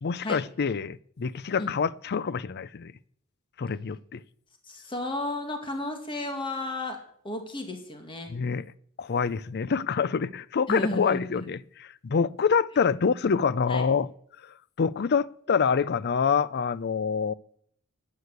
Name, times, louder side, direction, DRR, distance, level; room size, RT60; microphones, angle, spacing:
voice 1, 0.0-2.9 3.6-4.2 8.3-8.6 9.0-14.1 14.4-17.3, left 6 dB, 50° left, 0.5 m, -26 dB
voice 2, 4.7-7.0 7.2-8.3 10.7-11.5 13.7-13.9, left 1 dB, 25° left, 2.0 m, -33 dB
11.5 x 9.7 x 8.2 m
head